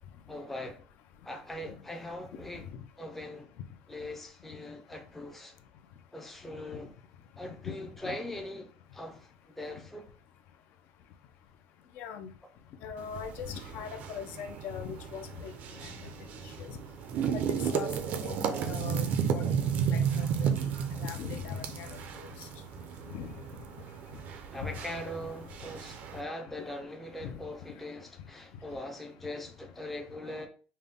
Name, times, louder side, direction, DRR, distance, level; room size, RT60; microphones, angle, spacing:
voice 1, 0.3-0.8 1.2-2.7 3.0-3.5 3.9-5.5 6.1-6.9 7.4-10.1 24.5-30.5, left 1 dB, 5° left, 0.5 m, -41 dB
voice 2, 12.0-12.3 12.8-15.5 15.8-15.9 16.6-16.8 17.5-18.4 18.7-19.4 19.9-20.6 20.9-22.5 23.1-23.3 24.6-24.7 27.2-27.4, left 8 dB, 55° left, 0.5 m, -40 dB
sound 1, 13.0-26.2, right 7 dB, 45° right, 0.5 m, -33 dB
5.4 x 2.2 x 3.5 m
cardioid pair, 175°, 4 cm